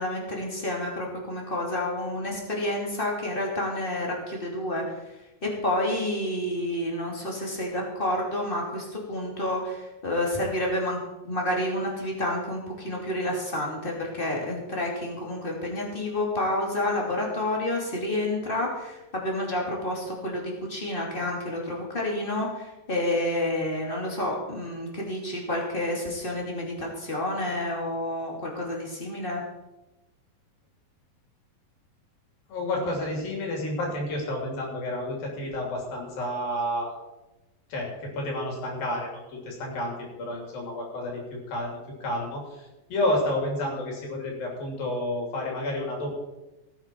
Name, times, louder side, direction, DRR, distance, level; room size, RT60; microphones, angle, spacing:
voice 1, 0.0-5.0 5.4-11.0 11.2-29.4, left 1 dB, 15° left, -1 dB, 2.2 m, -29 dB
voice 2, 32.5-36.9 37.7-41.7 42.0-46.1, left 1 dB, 80° left, -1 dB, 4.8 m, -30 dB
16.5 x 9.0 x 4.6 m, 1.0 s
omnidirectional pair, 4.1 m